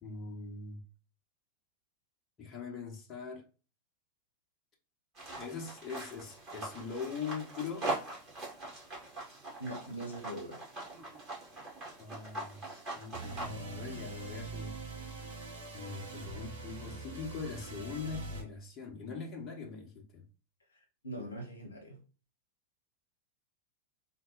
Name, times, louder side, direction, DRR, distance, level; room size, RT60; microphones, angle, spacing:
voice 1, 0.0-0.8 2.4-3.4 5.4-7.9 12.0-12.6 12.9-14.8 15.7-20.2, left 5 dB, 30° left, 1.0 m, -42 dB
sound 1, 5.1-13.5, right 2 dB, 30° right, 1.9 m, -42 dB
voice 2, 9.6-10.6 21.0-22.0, right 1 dB, 75° left, 0.8 m, -41 dB
sound 2, 13.1-18.4, right 3 dB, 60° right, 1.0 m, -43 dB
3.8 x 2.2 x 3.9 m
figure-of-eight pair, 90°, 0 cm